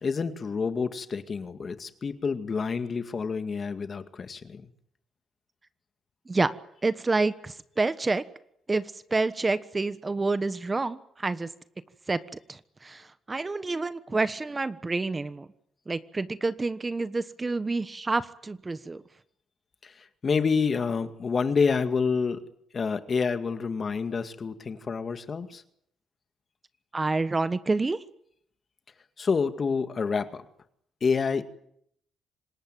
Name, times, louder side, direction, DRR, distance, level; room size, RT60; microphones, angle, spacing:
voice 1, 0.0-4.7 19.8-22.5 22.7-25.6 29.2-30.4 31.0-31.4, left 5 dB, 40° left, 10 dB, 2.1 m, -28 dB
voice 2, 6.8-8.2 8.7-11.5 12.1-12.2 12.5-15.5 15.9-19.0 26.9-28.0, right 3 dB, 25° right, 13 dB, 1.3 m, -28 dB
26.5 x 19.5 x 9.2 m, 0.71 s
cardioid pair, 90°, 0 cm